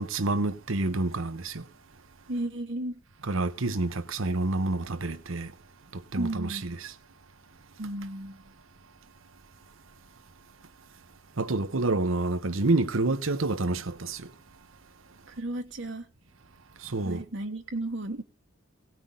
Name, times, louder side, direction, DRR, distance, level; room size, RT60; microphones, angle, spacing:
voice 1, 0.0-1.6 3.2-5.5 5.9-6.9 11.4-14.3 16.8-17.2, right 2 dB, 80° right, 1.0 m, -28 dB
voice 2, 2.3-3.0 6.2-6.6 7.8-8.4 15.3-16.1 17.0-18.2, right 1 dB, 60° right, 1.4 m, -33 dB
17.5 x 6.1 x 8.9 m
head